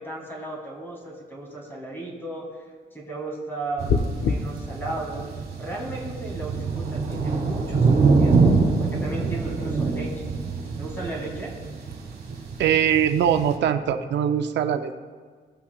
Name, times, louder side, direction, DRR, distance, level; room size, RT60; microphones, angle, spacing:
voice 1, 0.0-2.5 2.9-5.2 5.6-10.3 10.8-11.5, right 2 dB, 15° left, -1 dB, 1.9 m, -35 dB
sound 1, 3.8-13.6, right 4 dB, 65° right, 1.6 m, -25 dB
sound 2, 3.9-4.4, left 5 dB, 65° left, 0.5 m, -22 dB
voice 2, 12.6-15.0, right 9 dB, 90° right, 8 dB, 0.5 m, -22 dB
17.0 x 5.7 x 2.3 m, 1.5 s
cardioid pair, 120°, 18 cm